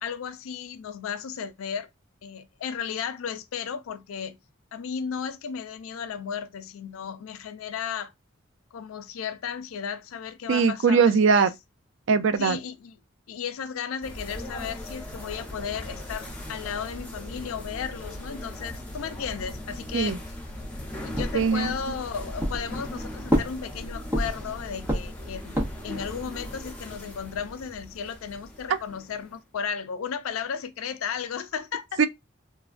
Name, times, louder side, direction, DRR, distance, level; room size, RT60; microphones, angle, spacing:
voice 1, 0.0-1.9 2.2-4.4 4.7-8.1 8.7-11.5 12.4-12.9 13.3-20.2 21.0-32.0, left 7 dB, 90° left, 0.4 m, -34 dB
voice 2, 10.5-11.5 12.1-12.6 19.9-20.2 21.3-22.0 28.7-28.8 32.0-32.1, right 5 dB, 65° right, 0.4 m, -21 dB
sound 1, 14.0-29.4, left 1 dB, 10° left, 0.9 m, -39 dB
sound 2, 21.1-22.0 22.4-23.0 23.3-24.5 24.9-26.0, equal, 10° right, 0.6 m, -27 dB
3.3 x 2.1 x 2.4 m
head